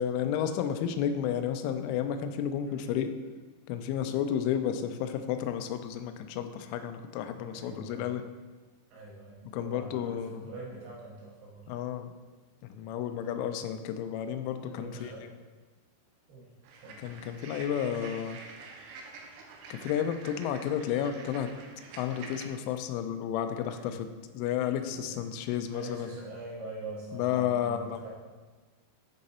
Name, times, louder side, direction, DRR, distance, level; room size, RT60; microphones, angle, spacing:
voice 1, 0.0-3.1 3.7-8.2 9.5-10.5 11.7-12.1 12.6-15.3 17.0-18.4 19.7-21.5 22.0-24.1 24.3-26.1 27.1-28.1, left 9 dB, 85° left, 8 dB, 2.9 m, -32 dB
voice 2, 7.5-8.1 8.9-11.7 13.2-13.4 14.6-15.3 16.3-16.5 16.8-17.0 23.5-24.0 24.5-25.2 25.7-28.1, right 2 dB, 65° right, -5 dB, 3.2 m, -44 dB
sound 1, 16.6-22.5, right 4 dB, 90° right, 2.4 m, -47 dB
8.6 x 3.7 x 4.2 m, 1.3 s
omnidirectional pair, 5.7 m